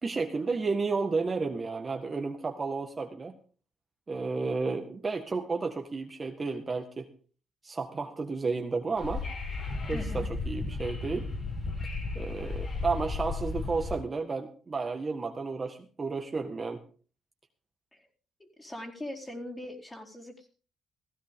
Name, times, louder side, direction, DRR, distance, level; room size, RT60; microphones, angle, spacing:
voice 1, 0.0-3.3 4.1-7.1 7.6-9.3 9.9-11.3 12.1-16.8, right 4 dB, 30° right, 4 dB, 1.6 m, -32 dB
Wind / Subway metro underground, 9.0-14.0, left 3 dB, 45° left, 6.5 m, -34 dB
voice 2, 9.9-10.3 17.9-18.1 18.4-20.5, left 1 dB, 15° left, -1 dB, 4.4 m, -41 dB
16.0 x 15.0 x 3.7 m, 0.40 s
cardioid pair, 90°, 0 cm